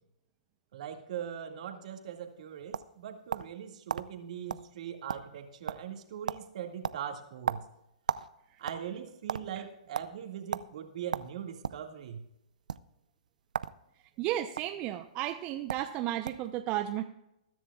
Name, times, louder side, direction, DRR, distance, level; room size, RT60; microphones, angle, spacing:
voice 1, 0.7-7.6 8.6-12.2, right 9 dB, 60° right, 4 dB, 2.0 m, -41 dB
sound 1, 2.2-3.6 3.9-4.1 4.5-4.7 4.9-5.4 5.7-6.0 6.3-6.5 6.8-8.3 8.6-9.4 9.9-10.1 10.5-10.7 11.1-11.8 12.6-12.8 13.5-13.8 14.0-14.6 15.4-15.5 15.7-15.9 16.2-16.5, right 7 dB, 85° right, 0.5 m, -34 dB
voice 2, 14.2-17.0, right 13 dB, 30° right, 7 dB, 0.7 m, -33 dB
20.5 x 10.0 x 2.4 m, 0.85 s
hypercardioid pair, 130°, 4 cm